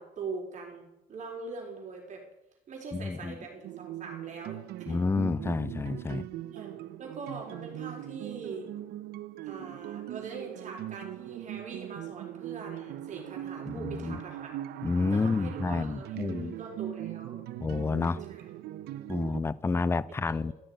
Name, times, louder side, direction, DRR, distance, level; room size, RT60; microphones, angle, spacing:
voice 1, 0.0-2.2 2.7-5.0 6.0-6.1 6.5-6.7 7.0-8.7 9.4-14.5 15.1-17.4 18.3-18.4 20.5-20.6, right 4 dB, 45° right, 4.2 m, -42 dB
voice 2, 2.9-3.3 4.9-6.2 13.7-14.2 14.8-16.5 17.6-18.2 19.1-20.5, left 4 dB, 15° left, 0.4 m, -29 dB
sound 1, 3.6-19.4, right 13 dB, 75° right, 0.7 m, -40 dB
14.0 x 6.8 x 9.2 m
cardioid pair, 110°, 17 cm